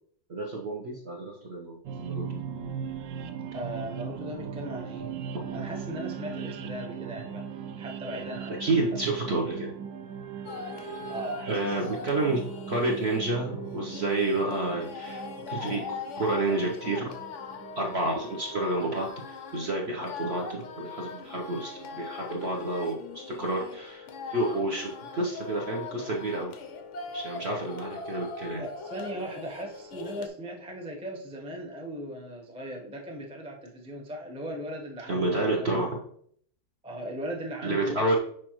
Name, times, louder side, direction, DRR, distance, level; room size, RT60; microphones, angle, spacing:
voice 1, 0.3-2.3 5.3-5.4 8.6-9.7 11.5-12.4 12.7-17.1 17.8-26.6 27.1-28.6 35.1-36.0 37.6-38.1, right 2 dB, 50° right, -1 dB, 0.8 m, -30 dB
sound 1, 1.8-19.0, right 7 dB, 75° right, 1.2 m, -39 dB
voice 2, 3.5-5.1 5.5-7.4 7.8-8.6 11.1-11.6 28.6-35.7 36.8-38.1, equal, 10° right, -1 dB, 0.4 m, -38 dB
sound 2, 10.4-30.3, left 4 dB, 75° left, 0.6 m, -41 dB
6.3 x 5.0 x 3.0 m, 0.62 s
omnidirectional pair, 2.0 m